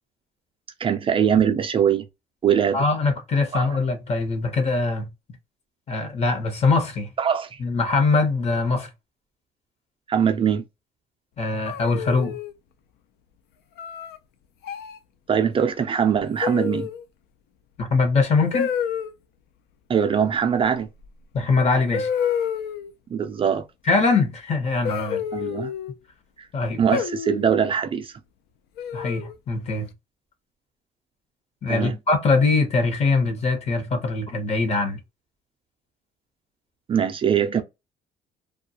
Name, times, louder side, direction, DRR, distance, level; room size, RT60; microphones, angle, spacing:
voice 1, 0.8-2.0 2.4-2.8 3.5-3.7 7.2-7.6 10.1-10.6 15.3-16.9 19.9-20.9 23.1-23.6 25.3-25.7 26.4-26.5 26.8-28.1 31.7-32.0 36.9-37.6, right 8 dB, 30° right, 0.4 m, -22 dB
voice 2, 2.7-5.1 5.9-7.1 7.6-8.9 11.4-12.4 17.8-18.7 21.3-22.1 23.9-25.2 26.5-26.8 28.9-29.9 31.6-35.0, left 3 dB, 40° left, 0.9 m, -22 dB
sound 1, 11.7-12.5 13.8-14.2 14.6-15.0 16.4-17.0 18.5-19.1 21.0-21.1 21.9-22.9 24.8-25.9 26.9-27.5 28.8-29.4, left 8 dB, 75° left, 0.4 m, -28 dB
2.3 x 2.3 x 2.7 m
cardioid pair, 110°, 17 cm